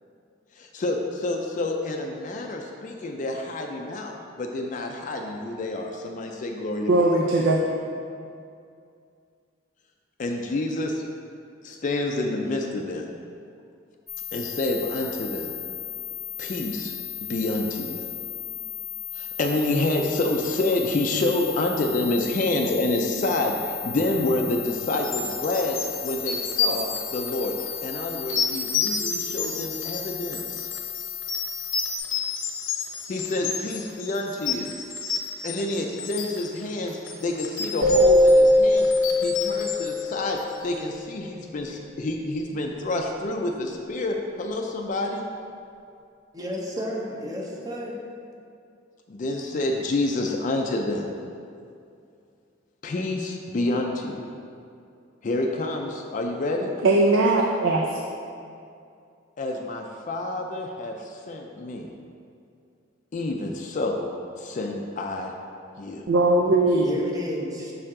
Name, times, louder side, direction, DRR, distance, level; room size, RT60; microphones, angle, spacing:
voice 1, 0.5-7.1 10.2-11.0 11.6-13.0 14.3-15.5 16.4-16.9 17.3-18.1 19.1-27.5 27.8-30.7 33.1-34.7 35.4-38.9 39.2-45.3 49.1-51.1 52.8-54.3 55.2-56.8 59.4-61.9 63.1-64.1 64.4-65.3 65.8-66.0, left 2 dB, 45° left, 2 dB, 0.4 m, -28 dB
voice 2, 6.9-7.6 56.8-57.9 66.1-67.0, right 2 dB, 85° right, 0 dB, 0.5 m, -19 dB
sound 1, 14.1-32.0, left 23 dB, 20° left, 0.8 m, -35 dB
sound 2, 24.9-40.7, left 5 dB, 85° left, 0.8 m, -31 dB
sound 3, 37.8-40.5, left 1 dB, 55° right, 1.1 m, -19 dB
voice 3, 46.3-48.0 66.8-67.7, equal, 20° right, -2 dB, 0.8 m, -32 dB
6.4 x 4.5 x 3.7 m, 2.4 s
head